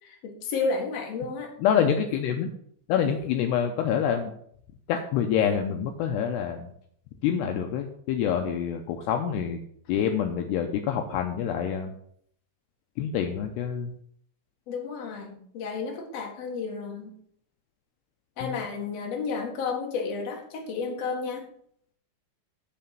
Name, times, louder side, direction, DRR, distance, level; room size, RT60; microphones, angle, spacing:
voice 1, 0.0-1.5 14.7-17.1 18.4-21.5, left 4 dB, 50° left, 0 dB, 2.1 m, -32 dB
voice 2, 1.6-2.5 2.9-4.3 4.9-6.7 7.2-9.6 9.9-11.9 13.0-13.9 18.4-18.6, left 8 dB, 85° left, 4 dB, 2.5 m, -26 dB
11.5 x 4.2 x 6.9 m, 0.66 s
omnidirectional pair, 5.5 m